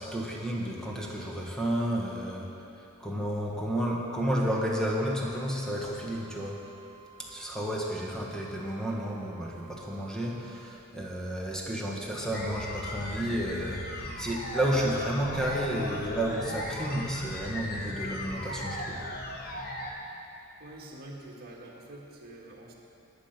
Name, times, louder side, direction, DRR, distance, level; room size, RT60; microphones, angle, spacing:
voice 1, 0.0-6.7 7.2-19.1, equal, ahead, -3 dB, 1.4 m, -32 dB
sound 1, 4.3-10.7 15.2-21.2, right 1 dB, 60° left, 1.5 m, -51 dB
sound 2, 12.3-19.9, left 1 dB, 45° left, 1.2 m, -37 dB
voice 2, 20.6-22.7, right 1 dB, 45° right, -2 dB, 1.7 m, -46 dB
11.0 x 8.5 x 5.9 m, 3.0 s
head